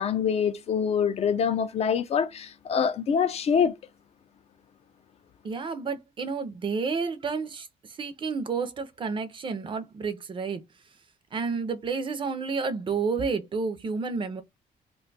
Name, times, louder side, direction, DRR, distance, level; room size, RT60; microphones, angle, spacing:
voice 1, 0.0-3.7, left 7 dB, 45° left, 0.4 m, -25 dB
voice 2, 5.4-10.6 11.3-14.4, right 5 dB, 35° right, 0.5 m, -30 dB
2.5 x 2.2 x 3.9 m
cardioid pair, 145°, 15 cm